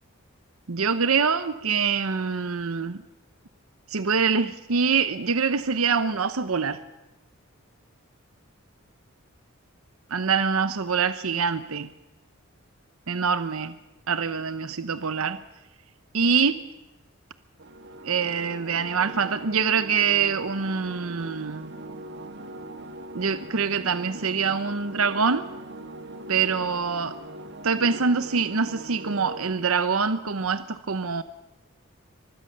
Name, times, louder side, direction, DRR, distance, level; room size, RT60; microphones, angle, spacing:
voice 1, 0.7-3.0 3.9-6.8 10.1-11.9 13.1-13.7 14.1-15.4 16.1-16.6 18.0-21.7 23.1-25.4 26.3-27.1 27.6-31.2, right 5 dB, 80° right, 0.9 m, -25 dB
sound 1, 17.6-29.5, right 2 dB, 55° right, 1.7 m, -41 dB
25.0 x 20.0 x 6.7 m
head